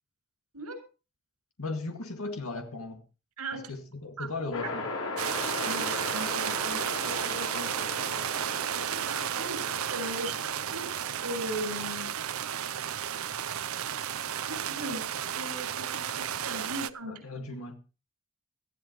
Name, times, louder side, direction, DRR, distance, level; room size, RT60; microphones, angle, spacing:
voice 1, 1.6-3.0 3.5-4.9 17.0-17.8, left 3 dB, 70° left, 2.1 m, -37 dB
sound 1, 4.5-11.9, left 3 dB, 85° left, 4.8 m, -38 dB
sound 2, 5.2-16.9, right 9 dB, 65° right, 0.7 m, -33 dB
voice 2, 5.6-7.7 8.7-10.9 11.2-12.1 14.5-15.0 15.3-17.2, right 1 dB, 85° right, 7.5 m, -39 dB
18.5 x 14.5 x 3.1 m
head